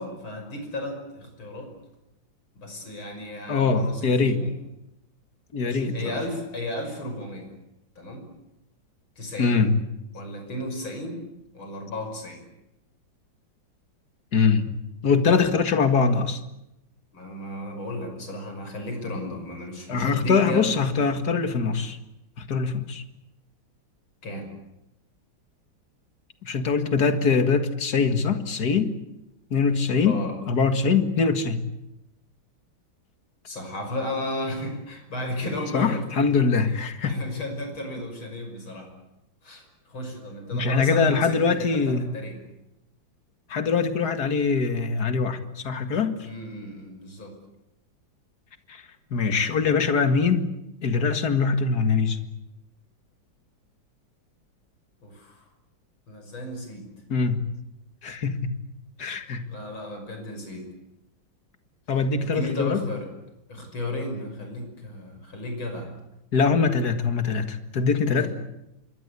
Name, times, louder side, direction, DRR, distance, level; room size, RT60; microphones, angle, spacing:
voice 1, 0.0-1.7 2.6-4.5 5.6-7.5 8.0-8.3 9.2-9.7 10.1-11.3 11.5-12.4 17.1-20.7 24.2-24.5 30.0-30.4 33.5-36.3 37.0-38.9 39.4-42.4 46.2-47.3 55.0-55.4 56.1-56.9 59.5-60.7 62.2-63.1 63.5-65.9 68.1-68.3, left 1 dB, 90° left, 4 dB, 6.6 m, -34 dB
voice 2, 3.5-4.4 5.5-6.2 9.4-9.8 14.3-14.7 15.0-16.4 19.9-22.0 22.4-23.0 26.4-28.9 29.5-30.2 30.5-31.6 35.7-37.2 40.5-42.1 43.5-46.2 48.7-48.8 49.1-50.5 50.8-52.2 57.1-57.4 58.0-58.6 59.0-59.5 61.9-62.8 66.3-68.3, left 5 dB, 50° left, 8 dB, 2.4 m, -23 dB
26.0 x 23.0 x 8.4 m, 0.90 s
omnidirectional pair, 2.2 m